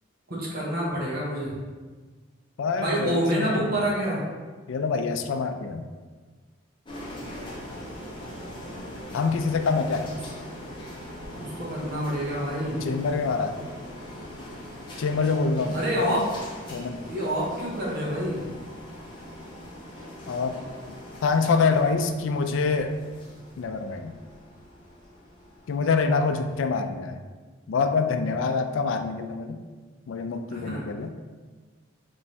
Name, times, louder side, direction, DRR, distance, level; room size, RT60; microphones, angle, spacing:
voice 1, 0.3-1.5 2.8-4.2 11.3-12.8 15.7-16.4 17.0-18.4 30.5-30.9, equal, 45° right, -5 dB, 1.1 m, -27 dB
voice 2, 2.6-3.8 4.7-5.9 9.1-10.1 12.8-13.5 15.0-16.2 16.7-17.1 20.3-20.6 20.9-23.0 23.6-24.1 25.7-27.2 27.7-29.6 30.1-31.1, left 4 dB, 70° left, 7 dB, 0.3 m, -26 dB
sound 1, 6.9-26.6, equal, 25° left, 0.7 m, -41 dB
3.4 x 3.2 x 4.2 m, 1.4 s
head